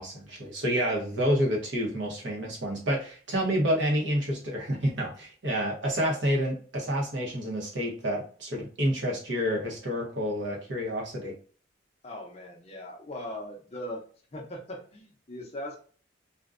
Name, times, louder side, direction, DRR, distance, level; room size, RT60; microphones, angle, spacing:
voice 1, 0.0-11.3, equal, 65° right, -1 dB, 0.8 m, -29 dB
voice 2, 12.0-14.0 14.3-15.8, left 1 dB, 30° left, 1 dB, 0.5 m, -39 dB
2.5 x 2.2 x 2.4 m, 0.43 s
head